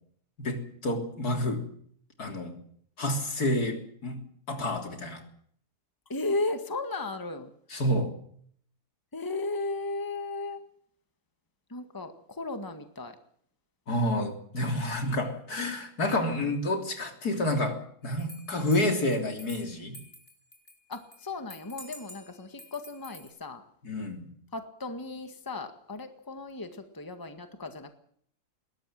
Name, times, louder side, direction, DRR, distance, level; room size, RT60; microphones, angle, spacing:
voice 1, 0.4-1.6 2.2-2.6 3.0-4.2 4.5-5.2 7.7-8.1 13.9-20.0 23.8-24.3, left 1 dB, 70° left, 5 dB, 3.9 m, -29 dB
voice 2, 6.1-7.5 9.1-10.6 11.7-13.2 20.9-23.6 24.5-27.9, left 2 dB, 15° left, 8 dB, 1.8 m, -35 dB
sound 1, 18.2-21.2 21.5-23.3, left 1 dB, 45° left, 4.7 m, -49 dB
21.5 x 17.5 x 7.6 m, 0.62 s
omnidirectional pair, 1.7 m